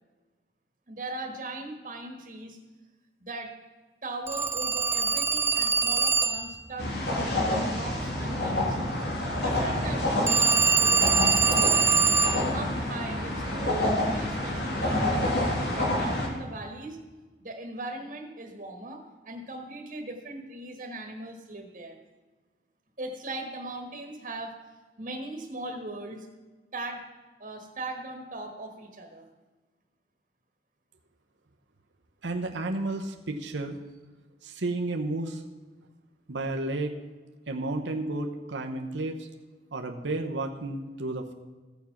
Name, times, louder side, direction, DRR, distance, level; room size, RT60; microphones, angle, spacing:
voice 1, 0.9-2.6 3.2-3.5 4.0-8.8 9.4-12.0 12.5-17.0 17.4-22.0 23.0-24.5 25.0-26.3 26.7-27.0 27.4-29.3, right 2 dB, 45° right, 2 dB, 1.5 m, -39 dB
Telephone, 4.3-6.6 10.3-12.5, right 5 dB, 15° right, 0.3 m, -23 dB
sound 1, 6.8-16.3, left 1 dB, 65° left, 2.4 m, -28 dB
voice 2, 32.2-33.8 34.4-35.4 36.3-37.0 37.5-39.3 39.7-41.3, right 2 dB, 90° right, 4 dB, 0.9 m, -32 dB
15.0 x 7.2 x 5.9 m, 1.3 s
head